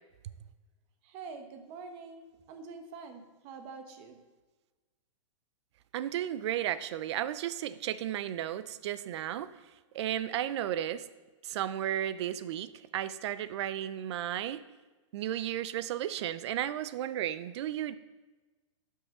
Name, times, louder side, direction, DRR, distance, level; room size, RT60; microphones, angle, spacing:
voice 1, 1.0-4.2, right 4 dB, 35° right, 6 dB, 1.0 m, -46 dB
voice 2, 5.9-9.5 9.9-11.1 11.4-14.6 15.1-18.0, right 11 dB, 55° right, 15 dB, 0.5 m, -34 dB
12.0 x 5.6 x 3.7 m, 1.2 s
hypercardioid pair, 150°, 17 cm